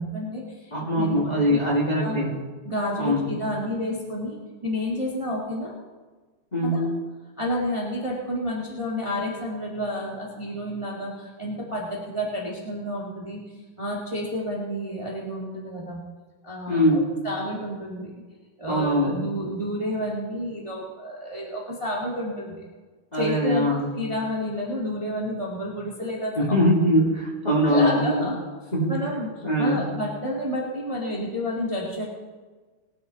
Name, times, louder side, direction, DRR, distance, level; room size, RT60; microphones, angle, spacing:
voice 1, 0.0-2.2 2.6-4.4 4.6-5.7 6.6-6.9 7.4-13.4 13.8-16.0 16.4-18.1 18.6-22.6 23.1-26.3 27.0-27.1 27.6-28.3 28.9-32.0, equal, 45° right, -4 dB, 0.4 m, -30 dB
voice 2, 0.7-2.3 3.0-3.3 6.5-6.9 16.7-17.2 18.7-19.1 23.1-23.9 26.3-28.3 28.7-29.0 29.4-29.8, equal, 20° left, -4 dB, 1.3 m, -22 dB
20.5 x 8.5 x 4.1 m, 1.4 s
omnidirectional pair, 4.3 m